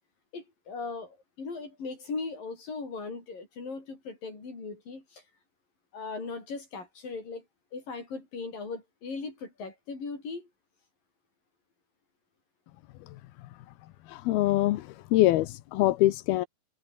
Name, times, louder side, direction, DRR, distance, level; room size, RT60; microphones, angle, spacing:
voice 1, 0.3-5.2 5.9-7.4 7.7-10.5, left 4 dB, 65° left, 9.1 m, -38 dB
voice 2, 14.1-16.5, left 16 dB, 90° left, 3.0 m, -24 dB
omnidirectional pair, 4.3 m